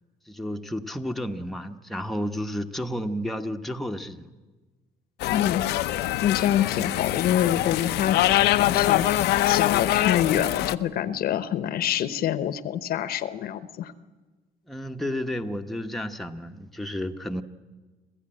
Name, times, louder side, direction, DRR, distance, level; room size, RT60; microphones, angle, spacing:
voice 1, 0.3-4.3 14.7-17.4, equal, ahead, 4 dB, 1.1 m, -31 dB
sound 1, 5.2-10.8, left 14 dB, 80° left, 0.7 m, -24 dB
voice 2, 5.3-5.7 6.2-13.9, left 10 dB, 65° left, 13 dB, 1.0 m, -26 dB
26.5 x 15.0 x 8.9 m, 1.3 s
cardioid pair, 110°, 17 cm